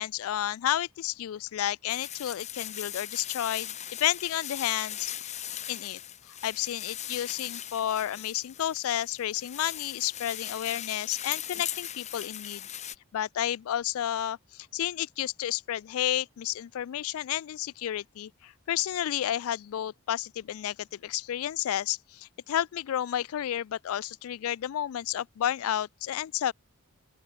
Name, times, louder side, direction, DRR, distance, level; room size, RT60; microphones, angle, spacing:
voice 1, 0.0-5.3 5.7-6.0 6.4-12.7 13.1-26.5, left 11 dB, 75° left, 0.3 m, -31 dB
sound 1, 1.9-13.0, left 11 dB, 30° left, 1.2 m, -39 dB
open air
head